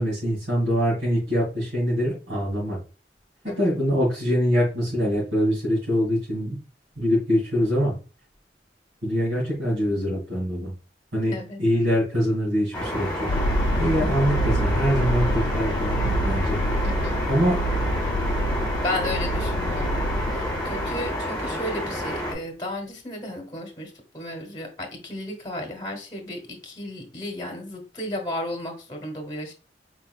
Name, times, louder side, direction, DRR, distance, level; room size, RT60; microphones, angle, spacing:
voice 1, 0.0-2.8 3.6-6.6 7.0-7.9 9.0-10.7 11.1-13.3 13.8-16.9 17.3-17.6 18.6-18.7, equal, 90° right, -7 dB, 2.4 m, -24 dB
sound 1, 12.7-22.3, left 1 dB, 5° left, 1.9 m, -29 dB
sound 2, 13.3-21.6, equal, 70° left, 0.4 m, -26 dB
voice 2, 16.8-17.2 18.8-29.5, left 1 dB, 25° left, 2 dB, 1.1 m, -34 dB
4.4 x 3.9 x 2.4 m, 0.33 s
head